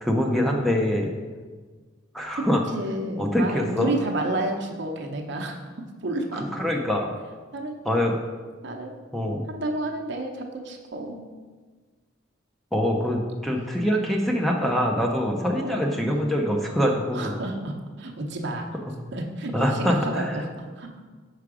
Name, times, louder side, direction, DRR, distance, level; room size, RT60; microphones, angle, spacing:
voice 1, 0.0-1.1 2.1-2.6 3.2-3.9 6.5-7.1 7.8-8.2 9.1-9.4 12.7-17.3 19.5-20.4, equal, ahead, 0 dB, 0.6 m, -24 dB
voice 2, 2.4-5.6 6.0-6.5 7.5-7.8 8.6-9.0 9.5-11.2 15.4-15.8 17.1-18.7 19.1-20.5 20.8-21.0, right 2 dB, 60° right, 2 dB, 0.8 m, -31 dB
5.7 x 4.8 x 4.8 m, 1.4 s
head